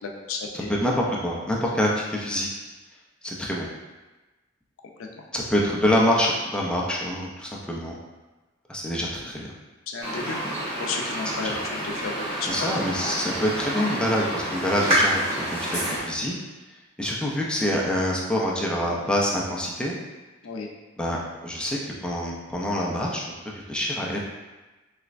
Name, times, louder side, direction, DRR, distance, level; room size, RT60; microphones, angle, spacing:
voice 1, 0.0-0.7 9.9-10.4 10.8-12.7 15.2-15.5 20.4-20.7, left 4 dB, 90° left, 1 dB, 0.4 m, -33 dB
voice 2, 0.7-2.5 3.2-3.7 5.3-8.0 8.7-9.5 11.4-11.5 12.4-15.2 15.5-16.4 17.0-19.9 21.0-23.2 23.7-24.2, equal, 5° left, -3 dB, 0.4 m, -26 dB
sound 1, 10.0-16.0, right 1 dB, 30° right, 1.3 m, -28 dB
3.3 x 3.0 x 2.5 m, 1.2 s
head